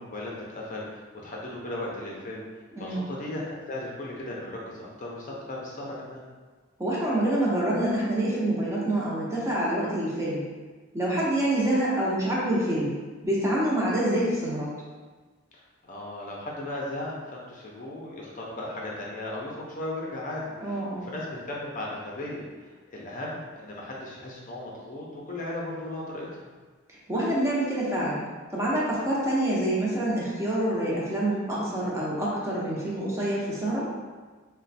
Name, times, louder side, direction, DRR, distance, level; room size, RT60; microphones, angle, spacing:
voice 1, 0.0-2.5 2.8-6.2 15.8-22.4 22.9-26.4, left 1 dB, 40° left, -3 dB, 0.6 m, -36 dB
voice 2, 2.7-3.1 6.8-10.4 10.9-12.9 13.2-14.7 20.5-21.1 27.1-28.2 28.5-33.9, right 1 dB, 15° right, -6 dB, 0.7 m, -26 dB
3.1 x 2.2 x 4.0 m, 1.4 s
head